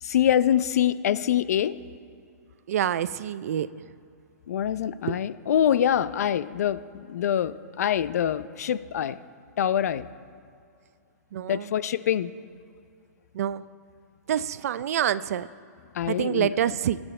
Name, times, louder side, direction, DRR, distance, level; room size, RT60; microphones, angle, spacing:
voice 1, 0.0-1.8 4.5-9.2 9.6-10.1 11.5-12.3 15.9-16.6, left 10 dB, 65° left, 15 dB, 0.6 m, -25 dB
voice 2, 2.7-3.7 5.1-5.2 11.3-11.7 13.3-13.6 14.3-15.5 16.1-17.0, right 10 dB, 60° right, 16 dB, 0.5 m, -26 dB
22.0 x 8.8 x 4.4 m, 2.5 s
hypercardioid pair, 160°, 9 cm